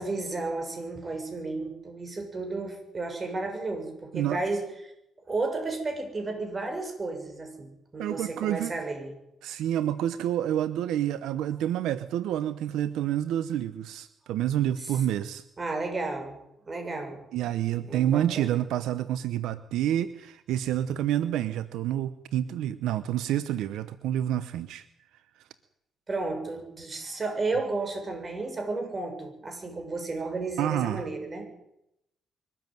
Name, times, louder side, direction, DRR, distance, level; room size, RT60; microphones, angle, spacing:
voice 1, 0.0-4.6 5.3-9.1 14.8-14.9 15.6-16.4 16.7-17.2 17.9-18.5 26.1-31.5, right 3 dB, 30° right, 5 dB, 6.7 m, -33 dB
voice 2, 8.0-8.7 9.4-15.4 17.3-24.8 30.6-31.0, right 11 dB, 85° right, 14 dB, 0.9 m, -28 dB
23.0 x 13.5 x 9.3 m, 0.81 s
cardioid pair, 90°, 0 cm